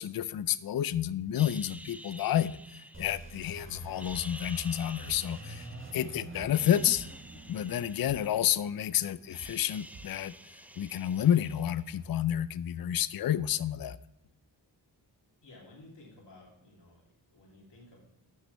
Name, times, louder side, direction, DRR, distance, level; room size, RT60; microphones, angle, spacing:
voice 1, 0.0-2.6 3.0-5.7 5.9-7.1 7.5-10.3 10.8-14.0, left 10 dB, 55° left, 16 dB, 0.5 m, -30 dB
sound 1, 1.3-3.5 3.9-6.1 6.4-8.8 9.1-12.0, right 1 dB, 5° right, 0.5 m, -49 dB
Cinematic Tension Build Up, 2.9-9.5, right 2 dB, 30° right, 1.4 m, -47 dB
sound 2, 5.0-5.2 5.6-5.8 6.2-7.3 7.7-7.8 8.0-8.2 8.6-8.8 9.2-9.6 9.9-10.1, right 5 dB, 45° right, 0.8 m, -50 dB
voice 2, 15.4-17.0 17.3-18.0, left 2 dB, 70° left, -4 dB, 3.0 m, -54 dB
10.5 x 6.0 x 3.3 m, 0.84 s
cardioid pair, 50°, 44 cm